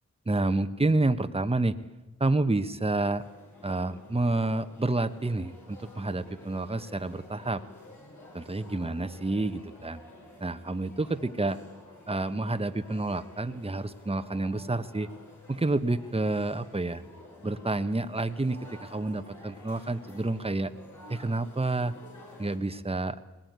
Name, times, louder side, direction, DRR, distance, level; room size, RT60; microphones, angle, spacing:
voice 1, 0.3-1.8 2.2-3.2 3.6-7.6 8.3-10.0 10.4-11.6 12.1-15.1 15.5-17.0 17.4-20.7 21.1-21.9 22.4-23.2, right 2 dB, 20° right, 10 dB, 1.2 m, -29 dB
sound 1, 2.9-22.6, left 2 dB, 75° left, 7.4 m, -51 dB
20.5 x 19.0 x 9.5 m, 1.1 s
cardioid pair, 50°, 30 cm